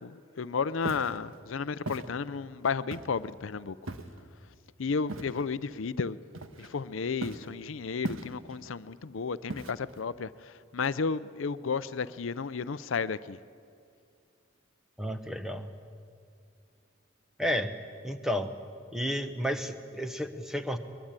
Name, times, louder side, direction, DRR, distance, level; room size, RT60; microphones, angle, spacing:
voice 1, 0.0-3.8 4.8-6.2 6.6-13.4, left 5 dB, 75° left, 15 dB, 0.6 m, -33 dB
Walk footsteps, 0.8-1.2 1.9-2.1 2.9-3.3 3.9-4.2 5.1-5.4 6.3-6.8 7.2-7.5 8.0-8.6 9.5-10.0, right 1 dB, 85° right, 1.5 m, -38 dB
voice 2, 15.0-15.7 17.4-17.7 18.0-18.5 18.9-20.8, equal, ahead, 7 dB, 1.0 m, -31 dB
23.0 x 20.5 x 8.9 m, 2.3 s
head